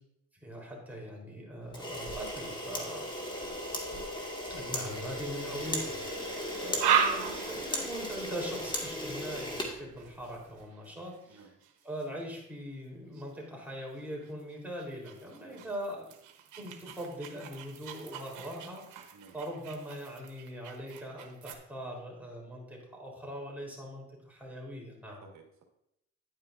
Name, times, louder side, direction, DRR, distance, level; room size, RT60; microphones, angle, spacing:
voice 1, 0.4-3.5 4.5-6.0 6.6-11.5 11.8-16.1 16.6-18.8 19.3-25.2, equal, 5° right, -3 dB, 3.9 m, -41 dB
Camera, 1.7-10.4, equal, 15° left, 2.0 m, -37 dB
voice 2, 3.3-4.2 11.3-11.6 15.5-15.7 19.1-19.4 25.2-25.6, right 4 dB, 65° right, 2 dB, 1.9 m, -56 dB
sound 1, 4.9-5.4 5.8-12.4 13.1-13.4 14.0-21.6, right 8 dB, 85° right, 1.2 m, -37 dB
10.0 x 9.3 x 2.6 m, 0.81 s
cardioid pair, 90°, 30 cm